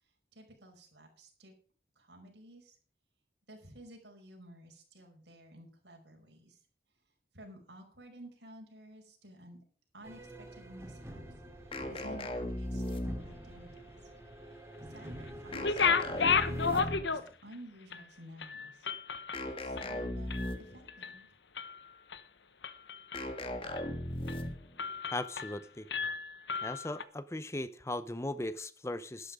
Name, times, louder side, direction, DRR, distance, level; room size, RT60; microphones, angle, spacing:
voice 1, 0.3-1.5 2.0-2.8 3.5-6.6 7.3-9.6 9.9-11.2 11.6-14.0 14.4-18.9 19.5-21.4, right 1 dB, 90° right, 2 dB, 5.3 m, -53 dB
sound 1, 10.0-16.9, right 1 dB, 15° right, 2.5 m, -47 dB
sound 2, 11.7-13.5 15.5-17.2 19.3-20.9 23.1-24.7, left 1 dB, 30° left, 1.7 m, -37 dB
sound 3, 15.5-17.5 17.9-18.0 18.4-20.6 20.9-21.2 21.6-22.2 22.6-23.4 23.8-23.9 24.3-24.5 24.8-25.6 25.9-27.0, left 5 dB, 85° left, 1.0 m, -33 dB
voice 2, 25.1-25.9 26.6-29.3, left 1 dB, 15° left, 15 dB, 0.6 m, -38 dB
12.0 x 12.0 x 5.0 m, 0.41 s
head